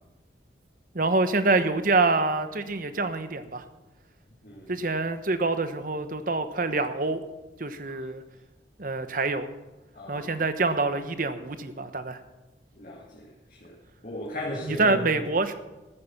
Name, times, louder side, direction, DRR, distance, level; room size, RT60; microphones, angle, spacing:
voice 1, 0.9-3.6 4.7-7.2 7.6-8.2 8.8-9.5 10.1-12.2 14.6-15.5, right 3 dB, 50° right, 10 dB, 1.0 m, -26 dB
voice 2, 9.9-10.3 12.8-13.3 13.6-13.7 14.0-15.0, left 1 dB, 45° left, -4 dB, 2.2 m, -36 dB
14.5 x 8.5 x 7.2 m, 1.1 s
head